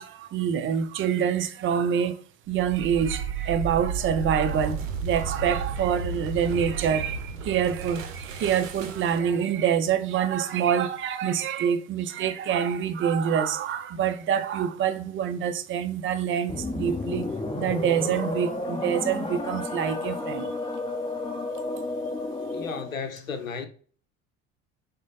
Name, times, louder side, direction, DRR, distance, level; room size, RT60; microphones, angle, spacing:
voice 1, 0.0-2.2 2.5-17.3 17.6-20.5, right 8 dB, 30° right, 0.5 m, -26 dB
sound 1, 2.5-9.4, right 6 dB, 75° right, 0.7 m, -33 dB
sound 2, 16.5-23.0, left 2 dB, 15° left, 0.8 m, -32 dB
voice 2, 22.5-23.7, left 5 dB, 85° left, 0.7 m, -34 dB
6.1 x 2.2 x 4.0 m
figure-of-eight pair, 60°, 39 cm